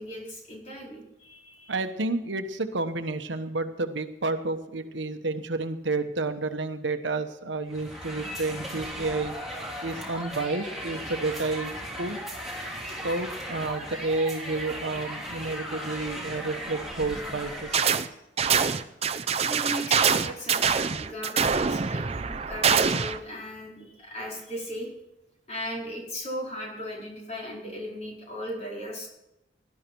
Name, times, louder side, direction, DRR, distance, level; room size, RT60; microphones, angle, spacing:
voice 1, 0.0-1.8 19.4-24.9 25.5-29.1, equal, 35° left, -3 dB, 4.7 m, -37 dB
voice 2, 1.7-9.3 9.8-11.7 12.0-12.2 13.0-17.8, right 3 dB, 75° right, 8 dB, 1.1 m, -30 dB
sound 1, 7.7-18.1, equal, ahead, 3.0 m, -37 dB
sound 2, 17.7-18.1 18.4-23.2, right 6 dB, 35° right, 0.6 m, -24 dB
17.5 x 12.0 x 4.6 m, 0.87 s
head